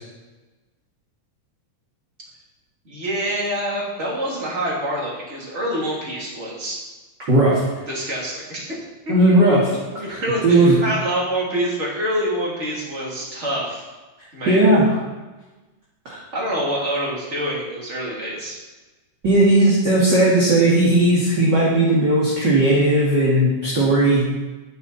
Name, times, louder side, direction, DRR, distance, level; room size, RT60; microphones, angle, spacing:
voice 1, 2.8-6.8 7.9-8.8 9.1-13.9 14.3-14.7 16.3-18.6, equal, 25° right, -4 dB, 2.9 m, -26 dB
voice 2, 7.3-7.6 9.1-9.7 10.1-10.8 14.5-14.9 16.1-16.2 19.2-24.4, right 1 dB, 40° right, -6 dB, 2.4 m, -16 dB
11.5 x 9.7 x 4.1 m, 1.2 s
omnidirectional pair, 3.4 m